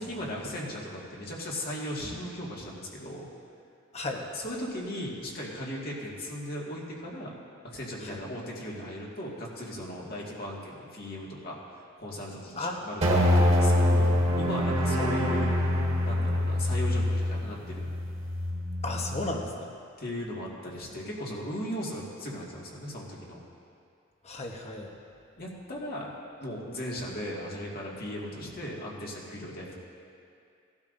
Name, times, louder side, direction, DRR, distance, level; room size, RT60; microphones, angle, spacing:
voice 1, 0.0-3.3 4.1-7.3 7.6-11.6 12.0-15.5 16.0-17.9 20.0-23.4 25.4-26.1 26.4-29.7, equal, 50° left, -4 dB, 2.0 m, -37 dB
voice 2, 12.6-12.9 13.2-13.3 15.0-15.1 18.8-19.7 24.2-24.9, left 2 dB, 35° left, 2 dB, 1.1 m, -34 dB
sound 1, 13.0-19.5, left 1 dB, 35° right, 1.8 m, -25 dB
18.0 x 12.0 x 2.6 m, 2.4 s
head